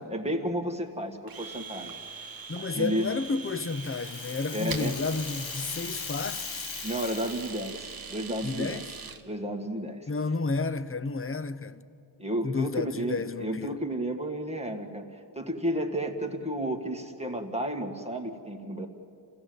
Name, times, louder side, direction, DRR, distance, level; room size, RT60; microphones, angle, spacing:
voice 1, 0.0-2.0 2.6-3.1 4.5-5.0 6.8-8.8 9.3-10.1 12.2-18.9, right 1 dB, 15° right, 1.8 m, -32 dB
Domestic sounds home sounds, 1.3-9.2, right 5 dB, 50° right, 1.2 m, -42 dB
voice 2, 2.5-6.7 8.4-8.9 10.1-11.8 12.4-13.8, left 3 dB, 30° left, 0.7 m, -31 dB
Rattle (instrument), 3.2-7.9, left 9 dB, 75° left, 0.8 m, -40 dB
28.0 x 16.5 x 7.9 m
wide cardioid pair, 95°, 46 cm